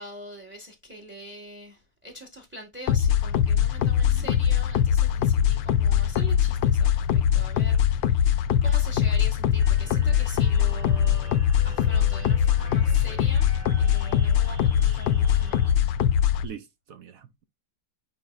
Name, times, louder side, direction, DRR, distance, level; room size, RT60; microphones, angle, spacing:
voice 1, 0.0-15.8, equal, 5° right, 1.2 m, -43 dB
sound 1, 2.9-16.5, left 9 dB, 80° left, 1.4 m, -22 dB
voice 2, 3.8-4.3 16.4-17.4, right 8 dB, 65° right, 0.9 m, -43 dB
sound 2, 9.6-15.7, right 2 dB, 30° right, 1.4 m, -47 dB
9.3 x 4.5 x 2.4 m
omnidirectional pair, 2.0 m